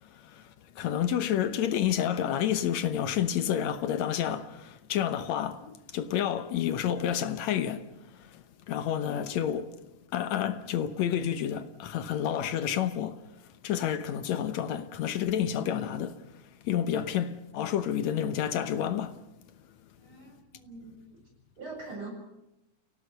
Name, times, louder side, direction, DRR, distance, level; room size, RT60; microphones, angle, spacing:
voice 1, 0.0-9.8 10.1-13.2 13.6-16.2 16.6-19.2, left 10 dB, 70° left, 2.2 m, -30 dB
voice 2, 20.0-21.2 21.6-22.1, right 3 dB, 40° right, 8.3 m, -43 dB
29.5 x 18.0 x 6.7 m
omnidirectional pair, 3.5 m